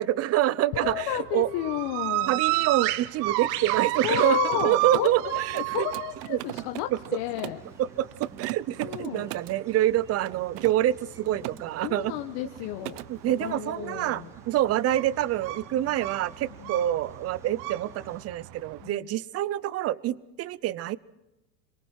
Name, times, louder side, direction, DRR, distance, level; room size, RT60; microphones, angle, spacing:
voice 1, 0.0-1.5 2.3-5.9 6.3-6.4 7.8-12.1 13.1-21.0, right 13 dB, 30° right, 21 dB, 0.6 m, -27 dB
voice 2, 0.7-2.4 4.0-7.6 8.8-9.3 11.8-14.3 16.6-16.8 18.8-19.1, left 14 dB, 55° left, 5 dB, 1.5 m, -32 dB
sound 1, 0.8-18.9, right 18 dB, 55° right, 1.0 m, -32 dB
Mechanisms, 3.6-7.7 8.1-9.6 10.2-11.6 11.9-12.2 12.5-13.1, right 18 dB, 80° right, 0.8 m, -39 dB
sound 2, 4.8-18.2, right 1 dB, 5° right, 2.8 m, -54 dB
26.5 x 22.5 x 4.6 m, 0.98 s
supercardioid pair, 125°, 47 cm